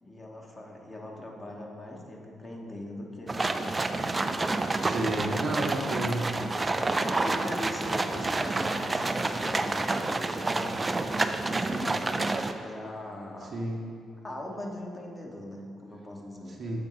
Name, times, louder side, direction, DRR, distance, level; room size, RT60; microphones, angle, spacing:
voice 1, 0.0-4.5 5.3-5.7 6.8-11.2 11.4-13.5 14.2-16.6, left 1 dB, 25° left, -1 dB, 1.1 m, -41 dB
sound 1, 3.3-12.5, right 2 dB, 25° right, 0.4 m, -29 dB
voice 2, 4.8-6.3 13.5-13.9 16.6-16.8, right 1 dB, 45° right, -1 dB, 0.9 m, -31 dB
7.2 x 4.6 x 3.8 m, 2.5 s
figure-of-eight pair, 40°, 0 cm